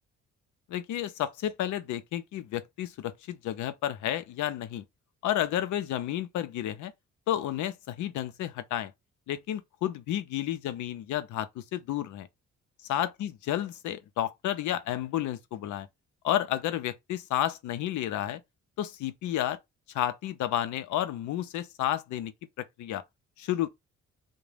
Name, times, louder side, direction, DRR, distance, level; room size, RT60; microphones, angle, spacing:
voice 1, 0.7-4.8 5.2-6.9 7.3-8.9 9.3-12.3 12.9-15.9 16.2-18.4 18.8-19.6 19.9-22.3 22.6-23.0 23.4-23.7, left 12 dB, 75° left, 0.5 m, -31 dB
2.5 x 2.1 x 3.2 m
cardioid pair, 90°, 30 cm